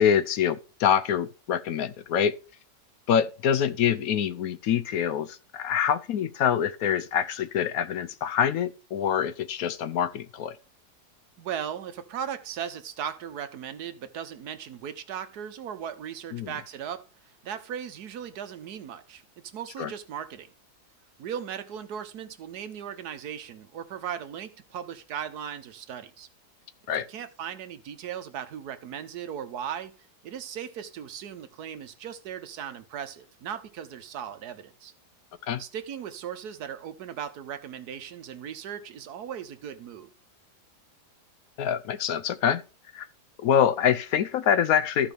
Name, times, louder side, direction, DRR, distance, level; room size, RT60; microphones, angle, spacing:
voice 1, 0.0-2.3 3.1-10.6 16.3-16.5 19.8-19.9 26.9-27.1 35.5-35.6 41.6-42.6 42.9-43.1 43.4-45.1, left 8 dB, 70° left, 1.0 m, -25 dB
voice 2, 11.4-17.1 17.4-20.5 21.2-26.3 27.1-29.9 30.2-34.9 35.6-40.1, right 8 dB, 75° right, 1.4 m, -37 dB
14.5 x 5.0 x 3.4 m
omnidirectional pair, 1.7 m